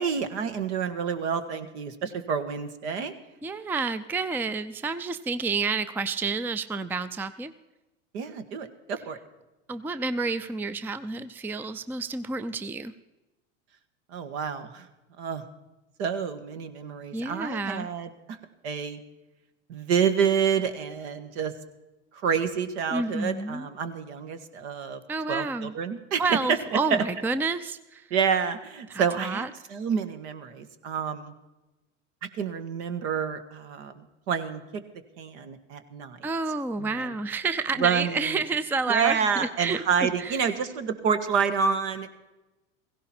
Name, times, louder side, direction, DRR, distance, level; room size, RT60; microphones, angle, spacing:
voice 1, 0.0-3.2 8.1-9.2 14.1-14.9 15.2-15.4 16.0-18.4 18.6-19.0 19.7-21.5 22.2-25.0 25.3-27.0 28.1-31.3 32.4-34.6 35.2-36.2 36.8-37.1 37.8-38.4 38.9-42.1, right 6 dB, 70° right, 9 dB, 1.7 m, -28 dB
voice 2, 3.4-7.5 9.7-12.9 17.1-17.9 22.9-23.7 25.1-25.7 26.2-28.0 28.9-29.5 36.2-40.4, right 4 dB, 5° right, 13 dB, 0.4 m, -29 dB
16.5 x 16.0 x 4.4 m, 1.0 s
hypercardioid pair, 95°, 35 cm